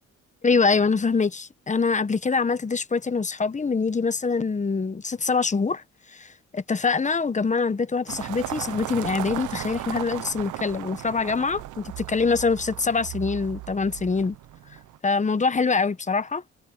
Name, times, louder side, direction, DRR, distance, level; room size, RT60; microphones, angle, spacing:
voice 1, 0.4-5.8 6.1-14.4 15.0-16.4, left 4 dB, 25° left, 1.2 m, -24 dB
sound 1, 8.1-15.0, right 15 dB, 80° right, 0.9 m, -36 dB
cardioid pair, 90°, 30 cm